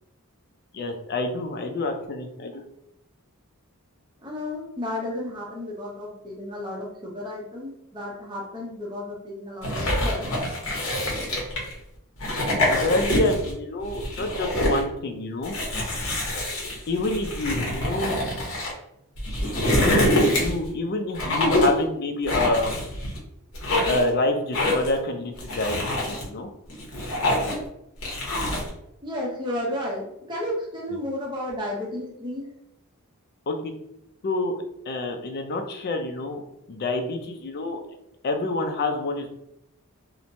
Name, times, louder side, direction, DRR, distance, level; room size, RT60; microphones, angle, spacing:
voice 1, 0.7-2.6 12.4-15.5 16.9-18.2 19.8-22.8 23.9-26.5 33.5-33.7 34.2-34.6 34.9-36.4 36.7-37.8 38.2-39.3, left 2 dB, 45° left, 5 dB, 0.4 m, -27 dB
voice 2, 4.2-10.3 19.7-19.9 29.0-32.5, left 1 dB, 20° right, -4 dB, 0.6 m, -32 dB
sound 1, 9.6-11.7 12.2-13.5 13.9-14.8 15.4-18.7 19.2-20.7 21.1-21.8 22.3-23.2 23.5-24.1 24.5-25.0 25.4-26.2 26.7-27.7 28.0-28.7, left 1 dB, 60° left, 0.9 m, -25 dB
3.0 x 2.1 x 2.6 m, 0.80 s
head